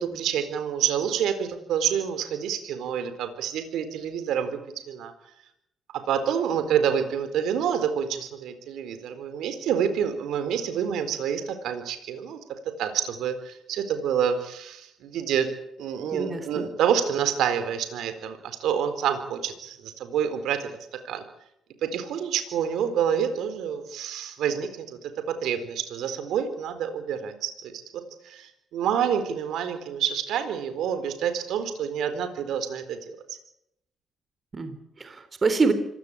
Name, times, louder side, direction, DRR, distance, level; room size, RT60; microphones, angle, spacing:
voice 1, 0.0-4.6 4.9-5.1 5.9-15.5 15.8-20.7 21.0-21.2 21.8-33.2, right 8 dB, 80° right, 10 dB, 4.1 m, -28 dB
voice 2, 16.1-16.7 34.5-35.7, right 4 dB, 35° right, 10 dB, 3.8 m, -26 dB
26.0 x 16.5 x 8.9 m, 0.79 s
cardioid pair, 90°, 0 cm